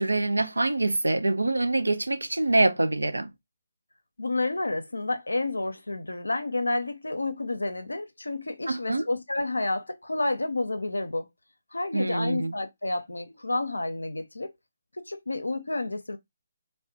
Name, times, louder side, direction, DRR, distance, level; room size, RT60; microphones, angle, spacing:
voice 1, 0.0-3.3 8.7-9.1 11.9-12.5, right 2 dB, 90° right, 0.4 m, -25 dB
voice 2, 4.2-11.3 11.7-14.5 15.0-16.2, left 2 dB, 85° left, 0.5 m, -30 dB
2.7 x 2.1 x 2.5 m
figure-of-eight pair, 145°, 0 cm